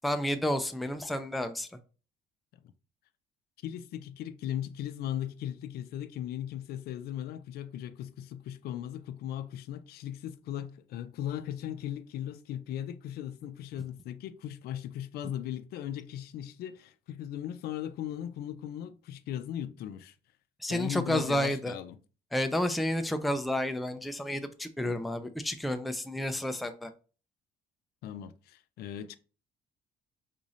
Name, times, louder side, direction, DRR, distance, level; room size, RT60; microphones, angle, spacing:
voice 1, 0.0-1.7 20.6-21.7 22.3-26.9, left 1 dB, ahead, 0.3 m, -30 dB
voice 2, 3.6-20.1 20.7-22.0 28.0-29.2, left 11 dB, 70° left, 0.4 m, -38 dB
3.7 x 2.6 x 3.1 m
cardioid pair, 110°, 17 cm